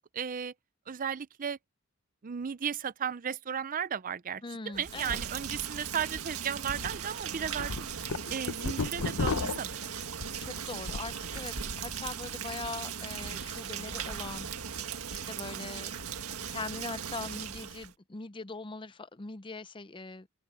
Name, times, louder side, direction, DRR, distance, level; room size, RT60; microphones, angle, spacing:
voice 1, 0.1-0.5 0.9-1.6 2.2-7.7 8.3-9.9, right 8 dB, 40° right, 0.5 m, -35 dB
voice 2, 4.4-5.2 10.4-14.8 15.1-15.9 16.5-20.3, left 3 dB, 25° left, 0.6 m, -41 dB
Rain, 4.7-17.9, right 7 dB, 90° right, 1.7 m, -38 dB
sound 1, 5.4-5.6 6.0-6.1 6.7-6.9 7.3-11.2 11.5-11.9, left 4 dB, 80° left, 0.9 m, -34 dB
open air
head